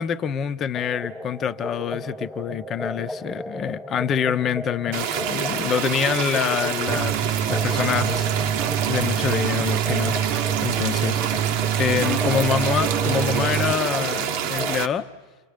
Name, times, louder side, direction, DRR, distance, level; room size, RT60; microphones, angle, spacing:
voice 1, 0.0-7.2 7.5-11.2 11.8-15.1, left 8 dB, 35° left, 11 dB, 0.9 m, -26 dB
sound 1, 0.7-14.8, left 1 dB, 5° left, 0.9 m, -34 dB
sound 2, 4.9-14.9, right 9 dB, 60° right, 1.0 m, -27 dB
sound 3, 6.9-13.7, right 10 dB, 45° right, 0.7 m, -26 dB
29.5 x 27.5 x 5.2 m, 1.2 s
hypercardioid pair, 105°, 0 cm